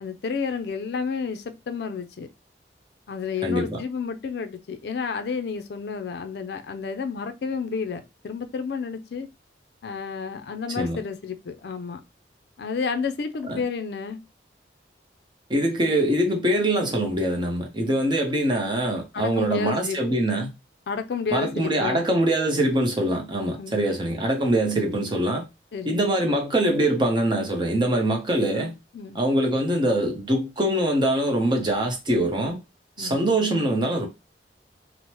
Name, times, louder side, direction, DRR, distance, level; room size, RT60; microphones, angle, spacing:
voice 1, 0.0-2.3 3.1-9.3 9.8-12.0 12.6-14.2 19.1-20.2 20.9-22.0 23.6-23.8 25.7-26.0 28.9-29.2 33.0-33.2, left 5 dB, 65° left, 0.4 m, -31 dB
voice 2, 3.4-3.8 10.8-11.0 13.5-13.6 15.5-20.5 21.3-25.4 25.9-28.7 29.1-32.6 33.0-34.1, right 1 dB, 25° right, 0.6 m, -23 dB
3.1 x 2.0 x 2.9 m
head